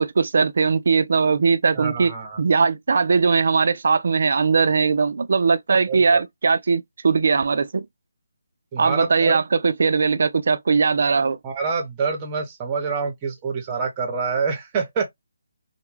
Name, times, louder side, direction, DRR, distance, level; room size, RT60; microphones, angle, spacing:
voice 1, 0.0-7.9 8.8-11.4, right 5 dB, 60° right, 0.3 m, -20 dB
voice 2, 1.8-2.4 5.9-6.2 8.7-9.4 11.4-15.1, right 5 dB, 20° right, 0.7 m, -26 dB
2.2 x 2.1 x 3.1 m
figure-of-eight pair, 160°, 0 cm